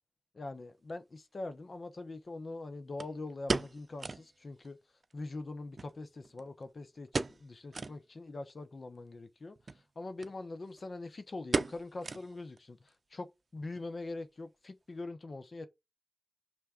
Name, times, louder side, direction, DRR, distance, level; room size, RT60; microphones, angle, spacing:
voice 1, 0.3-4.8 5.1-9.6 10.0-13.3 13.5-15.7, left 2 dB, 65° left, 0.8 m, -43 dB
sound 1, 0.9-1.0 3.0-4.3 4.6-4.7 5.0-5.1 5.8-6.6 7.1-7.5 7.7-8.0 8.5-8.6 9.6-9.8 10.2-10.3 10.6-11.0 11.5-12.6 12.9-13.0 13.6-13.9 14.2-14.3, right 3 dB, 65° right, 0.5 m, -36 dB
6.1 x 3.4 x 5.0 m
wide cardioid pair, 65°, 0 cm